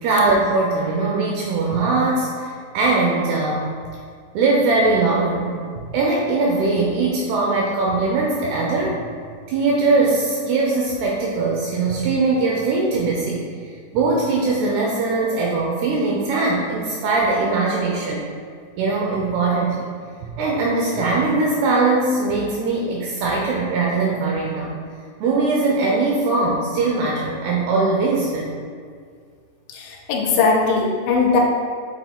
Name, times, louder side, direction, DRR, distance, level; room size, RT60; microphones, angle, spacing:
voice 1, 0.0-3.7 4.3-9.0 9.5-13.4 13.9-18.2 18.8-19.9 20.2-24.8 25.2-28.5, right 3 dB, 80° right, -2 dB, 2.3 m, -21 dB
voice 2, 29.7-31.4, left 4 dB, 85° left, -1 dB, 2.9 m, -19 dB
8.2 x 5.5 x 2.2 m, 2.1 s
omnidirectional pair, 5.3 m